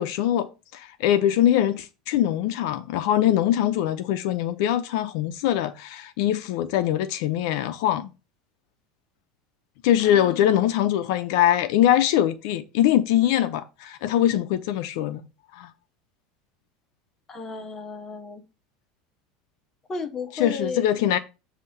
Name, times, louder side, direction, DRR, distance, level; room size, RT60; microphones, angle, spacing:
voice 1, 0.0-8.1 9.8-15.2 15.5-15.7 20.3-21.2, left 11 dB, 60° left, 0.6 m, -22 dB
voice 2, 10.0-10.7 17.3-18.4 19.9-20.8, left 4 dB, 15° left, 0.8 m, -34 dB
7.8 x 2.8 x 5.6 m
cardioid pair, 175°, 3 cm